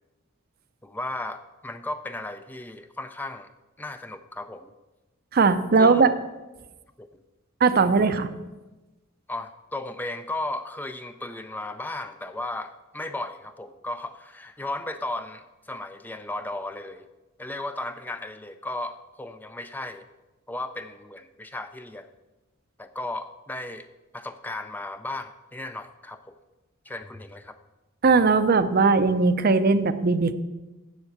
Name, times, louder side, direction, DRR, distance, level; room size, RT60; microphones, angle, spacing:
voice 1, 0.8-3.5 3.8-4.7 5.8-6.0 7.0-7.1 9.3-17.1 17.4-20.1 20.5-22.1 22.8-23.9 24.1-26.4 26.8-27.6, left 2 dB, 10° left, 9 dB, 0.3 m, -35 dB
voice 2, 5.3-6.1 7.6-8.3 28.0-30.3, right 4 dB, 45° right, 12 dB, 0.6 m, -19 dB
7.5 x 7.2 x 8.1 m, 1.1 s
head